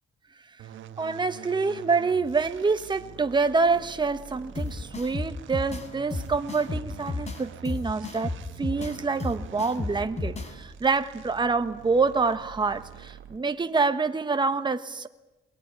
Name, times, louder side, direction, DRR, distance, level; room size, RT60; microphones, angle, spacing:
sound 1, 0.6-13.6, right 9 dB, 75° right, 1.5 m, -46 dB
voice 1, 1.0-8.3 8.6-15.1, right 4 dB, 25° right, 1.3 m, -26 dB
sound 2, 4.5-10.5, left 2 dB, 35° left, 3.8 m, -33 dB
22.5 x 20.0 x 9.9 m
cardioid pair, 90°, 20 cm